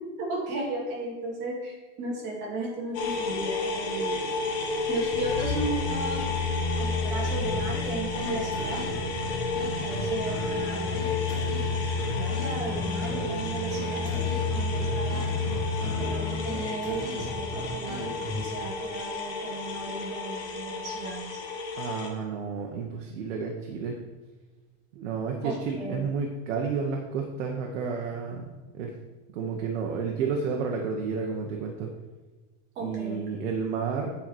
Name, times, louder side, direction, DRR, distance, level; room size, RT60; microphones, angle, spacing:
voice 1, 0.2-4.2 4.9-6.4 6.8-8.8 9.8-11.2 12.1-15.4 15.8-21.4 25.4-26.1 32.8-33.4, right 2 dB, 30° right, -2 dB, 2.0 m, -35 dB
sound 1, 2.9-22.1, left 3 dB, 60° left, 1.5 m, -33 dB
sound 2, 5.1-16.7 17.1-17.2, left 4 dB, 75° left, 1.4 m, -32 dB
sound 3, 7.5-18.5, left 1 dB, ahead, 2.7 m, -37 dB
voice 2, 21.8-24.0 24.9-29.0 29.3-31.9 32.8-34.1, right 5 dB, 70° right, 1 dB, 1.1 m, -31 dB
8.7 x 4.7 x 4.5 m, 1.2 s
supercardioid pair, 180°, 38 cm